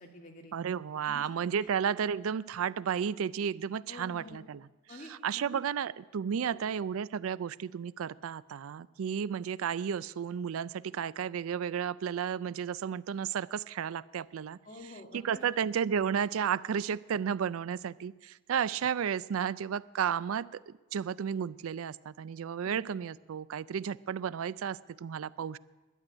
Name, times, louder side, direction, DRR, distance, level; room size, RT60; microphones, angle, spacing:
voice 1, 0.0-0.6 1.0-1.3 1.6-1.7 3.9-4.4 4.9-5.6 6.4-6.6 14.6-15.5 22.6-22.8, left 1 dB, 40° left, 1 dB, 2.1 m, -48 dB
voice 2, 0.5-4.6 5.2-14.6 15.1-25.6, right 7 dB, 90° right, 19 dB, 0.4 m, -33 dB
12.0 x 7.7 x 10.0 m, 1.2 s
head